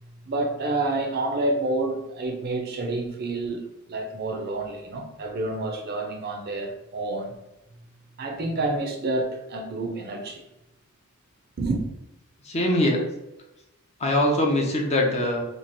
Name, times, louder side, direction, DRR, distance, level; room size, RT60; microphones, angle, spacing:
voice 1, 0.3-7.3 8.2-10.4 11.6-11.8, right 2 dB, 50° right, 0.5 m, -28 dB
voice 2, 12.4-13.0 14.0-15.4, left 1 dB, 30° left, 0.6 m, -22 dB
3.1 x 2.4 x 3.9 m
head